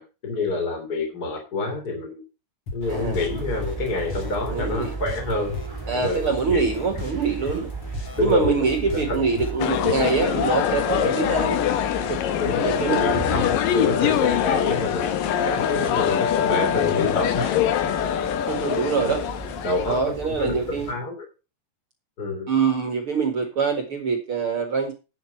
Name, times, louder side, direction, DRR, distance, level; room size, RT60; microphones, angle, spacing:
voice 1, 0.0-2.2 2.7-5.5 5.9-6.7 8.2-8.5 8.9-9.2 12.4-17.5 19.0-19.2 19.6-21.3 22.2-22.5, left 3 dB, 25° left, 3 dB, 2.9 m, -27 dB
sound 1, 2.7-10.2, left 2 dB, 45° left, 2.0 m, -37 dB
sound 2, 2.8-20.9, right 3 dB, 10° right, 1.5 m, -36 dB
voice 2, 2.9-3.2 4.5-4.9 5.9-7.7 8.2-11.6 12.1-12.2 12.6-13.2 13.8-14.0 18.5-19.2 19.9-20.9 22.5-24.9, right 5 dB, 50° right, 5 dB, 1.7 m, -24 dB
sound 3, 9.6-20.0, left 9 dB, 70° left, 2.4 m, -23 dB
11.0 x 8.3 x 4.6 m, 0.31 s
omnidirectional pair, 5.0 m